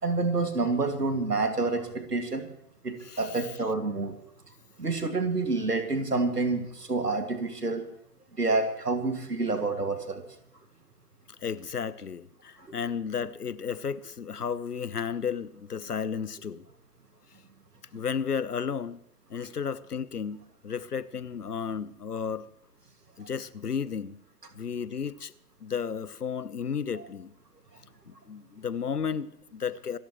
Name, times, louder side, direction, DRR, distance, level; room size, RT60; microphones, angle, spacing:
voice 1, 0.0-2.5 2.8-4.2 4.8-7.8 8.4-10.2 12.6-12.8 26.9-27.0, right 3 dB, 85° right, 6 dB, 2.3 m, -28 dB
voice 2, 3.0-3.4 11.4-16.7 17.9-19.0 19.3-22.5 23.2-24.2 24.5-25.3 25.6-27.3 28.1-30.0, left 6 dB, 80° left, 18 dB, 0.9 m, -33 dB
27.0 x 14.5 x 3.1 m, 0.73 s
figure-of-eight pair, 110°, 46 cm